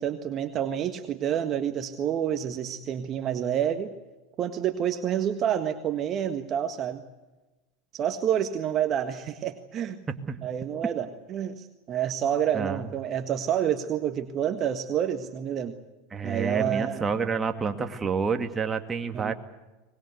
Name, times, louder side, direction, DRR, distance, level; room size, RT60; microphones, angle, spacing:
voice 1, 0.0-3.9 4.4-7.0 7.9-10.0 10.4-15.8 16.2-17.0 19.1-19.3, right 9 dB, 40° right, 8 dB, 1.6 m, -28 dB
voice 2, 10.1-10.4 12.5-12.9 16.1-19.3, right 5 dB, 25° right, 7 dB, 2.2 m, -29 dB
24.0 x 21.0 x 8.2 m, 1.1 s
hypercardioid pair, 95°, 0 cm